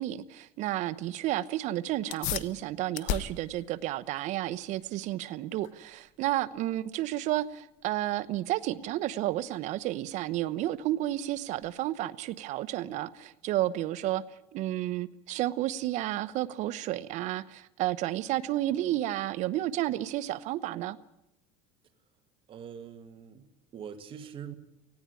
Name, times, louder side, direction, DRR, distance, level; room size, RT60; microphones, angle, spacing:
voice 1, 0.0-14.2 14.5-21.0, right 14 dB, 55° right, 15 dB, 1.0 m, -31 dB
sound 1, 2.0-12.0, left 12 dB, 60° left, 1.1 m, -41 dB
voice 2, 22.5-24.5, right 8 dB, 35° right, 9 dB, 1.9 m, -44 dB
19.0 x 15.5 x 9.8 m, 0.89 s
cardioid pair, 135°, 15 cm